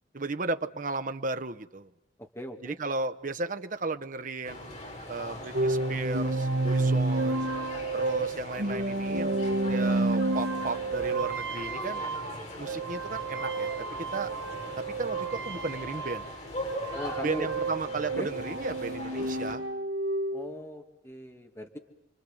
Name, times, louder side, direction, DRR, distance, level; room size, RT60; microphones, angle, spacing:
voice 1, 0.1-1.9 2.6-4.8 5.1-7.5 7.9-9.4 9.7-12.1 12.6-14.3 14.8-16.3 17.2-19.6, right 3 dB, 45° right, 8 dB, 1.1 m, -34 dB
voice 2, 2.2-2.8 16.9-17.5 18.2-18.3 20.3-21.8, equal, 15° left, 3 dB, 2.4 m, -39 dB
sound 1, 4.4-19.6, left 1 dB, 40° left, 5.6 m, -41 dB
sound 2, 5.5-16.4 16.6-20.6, right 2 dB, 75° right, 1.1 m, -30 dB
29.5 x 24.5 x 7.9 m, 0.81 s
head